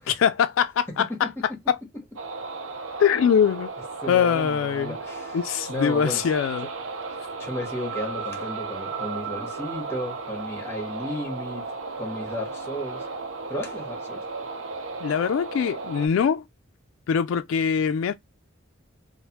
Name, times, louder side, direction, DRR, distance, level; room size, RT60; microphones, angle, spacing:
voice 1, 0.0-1.8 3.0-3.7 4.1-5.0 5.3-6.7 15.0-16.5 17.1-18.1, left 7 dB, 80° left, 0.3 m, -23 dB
voice 2, 1.0-1.3 1.9-2.0 4.0-5.4 5.7-6.2 7.4-13.1 13.5-14.2, left 1 dB, 10° left, 1.1 m, -34 dB
sound 1, 2.2-16.1, right 4 dB, 85° right, 0.6 m, -35 dB
3.1 x 2.1 x 2.9 m
head